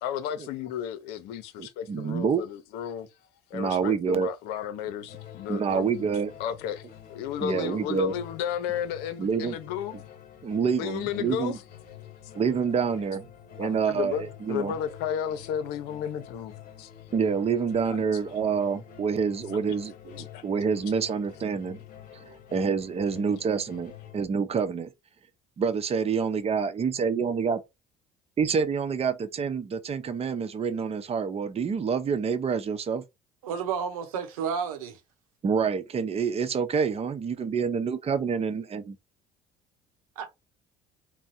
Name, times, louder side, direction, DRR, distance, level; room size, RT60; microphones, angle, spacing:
voice 1, 0.0-3.1 3.5-6.1 6.4-9.9 10.8-11.6 13.6-16.9 17.8-18.0 18.2-18.3 20.2-20.4, left 9 dB, 70° left, 0.7 m, -33 dB
voice 2, 1.6-2.4 3.5-4.3 5.5-6.3 7.4-8.1 9.2-9.6 10.4-11.6 12.3-13.2 13.6-14.7 17.1-21.8 22.5-24.9 25.6-27.6 28.4-33.0 35.4-39.0, right 6 dB, 35° right, 0.8 m, -27 dB
sound 1, 5.1-24.3, left 9 dB, 55° left, 1.1 m, -47 dB
voice 3, 33.4-35.0 40.2-40.3, right 7 dB, 85° right, 0.9 m, -31 dB
3.4 x 2.2 x 4.1 m
hypercardioid pair, 65°, 18 cm